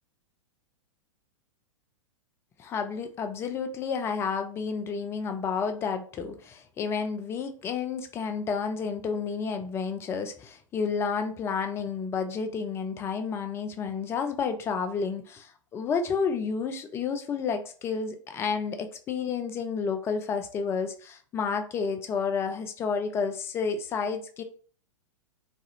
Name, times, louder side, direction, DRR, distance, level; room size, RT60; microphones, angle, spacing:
voice 1, 2.6-24.4, left 5 dB, 15° left, 8 dB, 0.3 m, -30 dB
3.1 x 2.3 x 2.7 m, 0.43 s
figure-of-eight pair, 100°, 17 cm